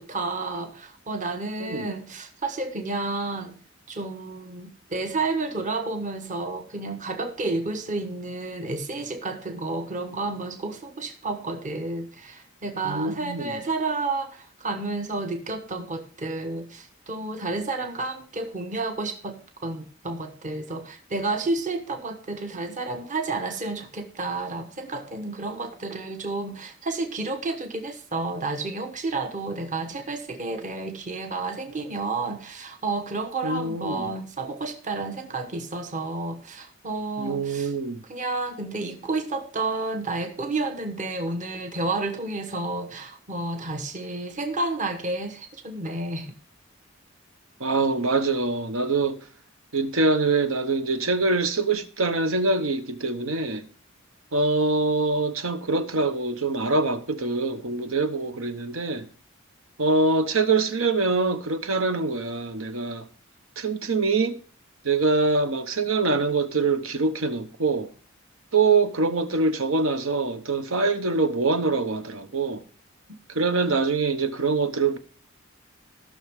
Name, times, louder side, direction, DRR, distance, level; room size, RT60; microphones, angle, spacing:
voice 1, 0.0-3.6 3.9-37.7 38.1-46.3, right 3 dB, 40° right, 1.1 m, -31 dB
voice 2, 1.6-1.9 12.8-13.5 33.4-34.1 37.2-38.0 47.6-49.2 49.7-53.7 54.3-59.1 59.8-63.1 63.6-64.4 64.8-67.9 68.5-72.6 73.3-75.0, right 3 dB, 85° right, 1.0 m, -24 dB
16.5 x 6.2 x 3.6 m
head